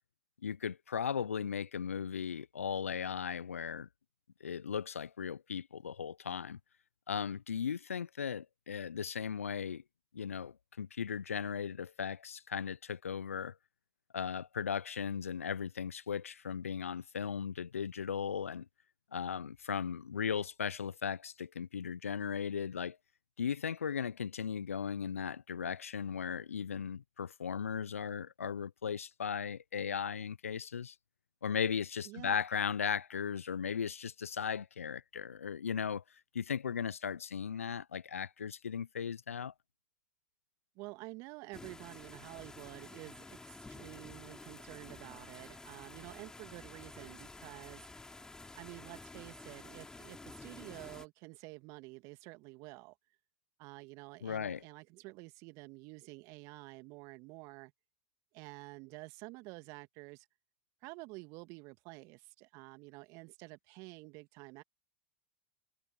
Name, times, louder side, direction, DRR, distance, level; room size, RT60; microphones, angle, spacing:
voice 1, 0.4-3.9 4.4-6.6 7.1-9.8 10.1-13.6 14.1-18.7 19.1-23.0 23.4-31.0 31.4-36.0 36.3-39.5 54.2-54.6, left 7 dB, 85° left, 0.6 m, -37 dB
voice 2, 32.0-32.4 40.8-47.9 48.6-53.0 53.6-57.7 58.3-60.3 60.8-64.6, right 25 dB, 50° right, 2.1 m, -50 dB
sound 1, 41.5-51.0, left 3 dB, 10° left, 6.5 m, -51 dB
hypercardioid pair, 95°, 7 cm